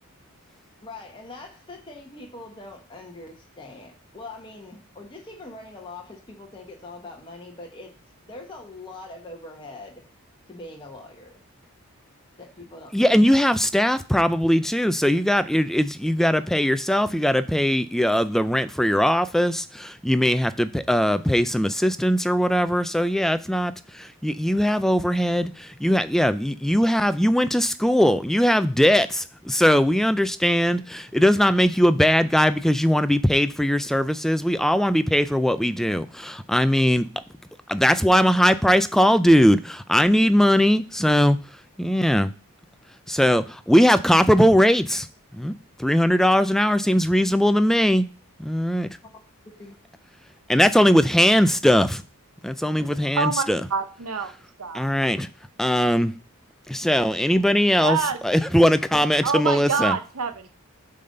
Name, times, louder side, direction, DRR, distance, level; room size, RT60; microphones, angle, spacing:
voice 1, 0.8-7.9 8.3-10.0 10.5-11.4 12.3-13.4 49.6-49.8 52.8-53.1, left 2 dB, 20° left, 1.4 m, -42 dB
voice 2, 12.9-37.1 37.7-41.4 41.8-42.3 43.1-45.1 45.3-45.5 45.8-48.0 48.4-48.9 50.5-52.0 52.4-53.6 54.7-55.3 55.6-56.1 56.7-58.0 58.2-59.9, equal, ahead, 0.3 m, -20 dB
voice 3, 53.1-54.3 54.6-54.9 57.8-58.2 59.2-60.6, right 5 dB, 85° right, 0.8 m, -26 dB
8.8 x 4.0 x 6.6 m
head